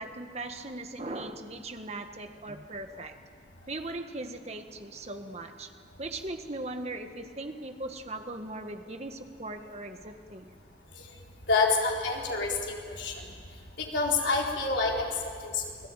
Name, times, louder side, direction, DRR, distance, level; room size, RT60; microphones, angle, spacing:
voice 1, 0.0-3.2 3.7-5.7 6.0-10.5, right 2 dB, 35° right, 6 dB, 1.5 m, -39 dB
voice 2, 11.5-13.3 13.8-15.9, left 3 dB, 80° left, -1 dB, 4.0 m, -28 dB
28.5 x 18.0 x 9.0 m, 2.1 s
head